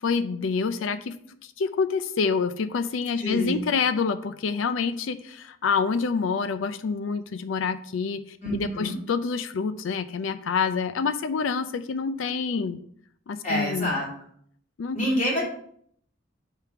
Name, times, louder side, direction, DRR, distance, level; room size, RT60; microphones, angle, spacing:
voice 1, 0.0-1.2 1.6-12.8 13.3-13.9 14.8-15.2, left 5 dB, 85° left, 11 dB, 0.4 m, -27 dB
voice 2, 3.2-3.6 8.4-9.0 13.4-14.1 14.9-15.4, equal, 40° left, -4 dB, 2.6 m, -27 dB
5.0 x 4.7 x 5.8 m, 0.64 s
head